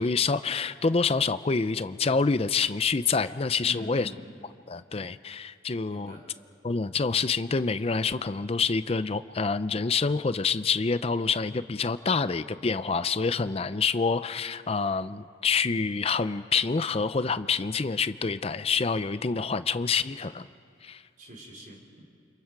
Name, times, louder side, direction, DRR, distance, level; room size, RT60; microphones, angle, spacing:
voice 1, 0.0-4.1 4.7-6.2 6.6-20.5 20.8-21.0, left 4 dB, 35° left, 14 dB, 0.5 m, -27 dB
voice 2, 3.6-4.2 5.9-6.3 21.2-22.0, right 1 dB, 45° right, -1 dB, 3.9 m, -44 dB
29.5 x 26.5 x 4.7 m, 2.4 s
head